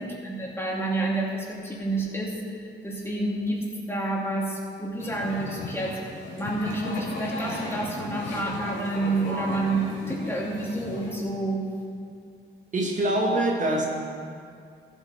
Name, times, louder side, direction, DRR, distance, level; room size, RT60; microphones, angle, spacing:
voice 1, 0.0-6.0 6.4-11.7, right 2 dB, 10° left, -3 dB, 2.5 m, -29 dB
sound 1, 5.0-11.1, left 1 dB, 75° left, 2.6 m, -35 dB
voice 2, 12.7-13.9, right 1 dB, 40° right, 0 dB, 1.4 m, -24 dB
14.0 x 7.9 x 4.2 m, 2.3 s
cardioid pair, 90°, 20 cm